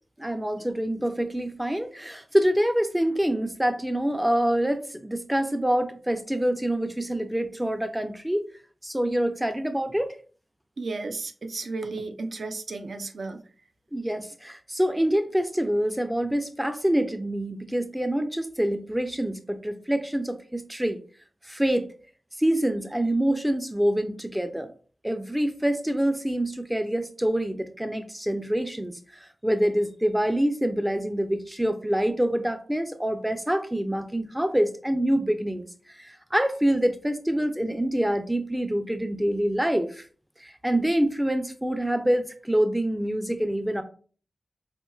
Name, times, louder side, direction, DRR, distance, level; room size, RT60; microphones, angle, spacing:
voice 1, 0.2-8.5 8.8-10.1 13.9-21.0 21.5-21.9 22.4-24.7 25.0-28.9 29.2-35.7 36.0-40.0 40.4-43.8, right 1 dB, 10° right, 8 dB, 0.3 m, -26 dB
voice 2, 10.8-13.4, right 3 dB, 70° right, 8 dB, 0.4 m, -33 dB
4.3 x 2.8 x 2.3 m, 0.41 s
wide cardioid pair, 85°, 0 cm